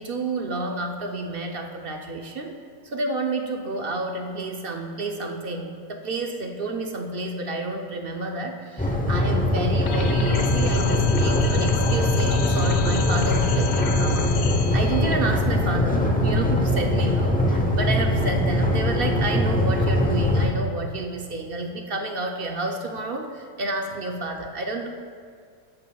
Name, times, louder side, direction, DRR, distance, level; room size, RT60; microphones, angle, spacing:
voice 1, 0.0-2.5 2.8-14.3 14.7-24.9, right 2 dB, 60° right, 3 dB, 0.6 m, -30 dB
sound 1, 8.8-20.5, left 1 dB, 15° left, 0.3 m, -22 dB
sound 2, 9.9-15.1, left 5 dB, 70° left, 1.3 m, -29 dB
13.5 x 9.7 x 2.3 m, 2.1 s
omnidirectional pair, 1.6 m